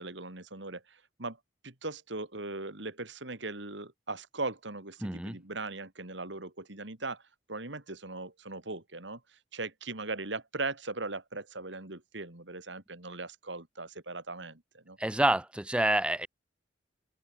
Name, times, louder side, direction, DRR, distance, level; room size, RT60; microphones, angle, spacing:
voice 1, 0.0-1.4 1.6-7.2 7.5-15.0, right 3 dB, 70° right, 3.1 m, -39 dB
voice 2, 5.0-5.4 15.0-16.3, right 1 dB, 5° right, 0.4 m, -27 dB
open air
head